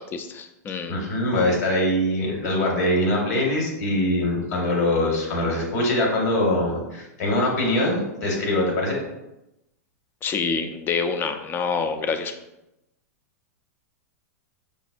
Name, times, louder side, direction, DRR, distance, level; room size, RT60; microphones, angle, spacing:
voice 1, 0.0-1.0 10.2-12.3, left 5 dB, 25° left, 7 dB, 0.3 m, -27 dB
voice 2, 0.9-9.0, left 1 dB, 65° left, -1 dB, 1.3 m, -23 dB
5.1 x 2.1 x 2.5 m, 0.90 s
hypercardioid pair, 110°, 9 cm